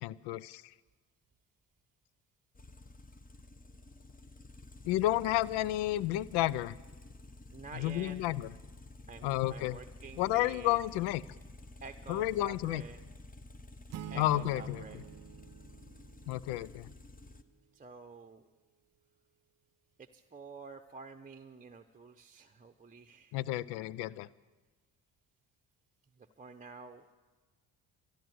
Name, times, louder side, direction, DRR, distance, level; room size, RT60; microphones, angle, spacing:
voice 1, 0.0-0.6 4.9-6.7 7.8-8.5 9.2-9.8 10.2-11.2 12.1-12.8 14.2-14.8 16.3-16.9 23.3-24.3, left 15 dB, 80° left, 20 dB, 0.5 m, -31 dB
sound 1, 2.5-17.4, left 2 dB, 20° left, 1.0 m, -52 dB
voice 2, 7.5-8.2 9.1-10.8 11.8-13.0 14.1-15.0 17.7-18.4 20.0-23.4 26.2-27.1, right 4 dB, 20° right, 7 dB, 0.8 m, -49 dB
sound 2, 13.9-16.7, right 10 dB, 40° right, 0.5 m, -47 dB
13.5 x 11.5 x 7.7 m, 1.3 s
supercardioid pair, 60°, 40 cm